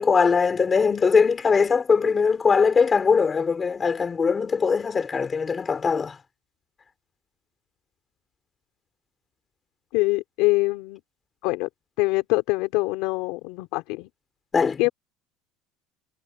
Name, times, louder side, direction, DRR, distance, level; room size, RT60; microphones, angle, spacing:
voice 1, 0.0-6.1 14.5-14.8, left 5 dB, 20° left, 5.0 m, -21 dB
voice 2, 9.9-11.0 11.4-11.7 12.0-14.1 14.8-14.9, left 22 dB, 65° left, 3.9 m, -24 dB
cardioid pair, 170°, 0 cm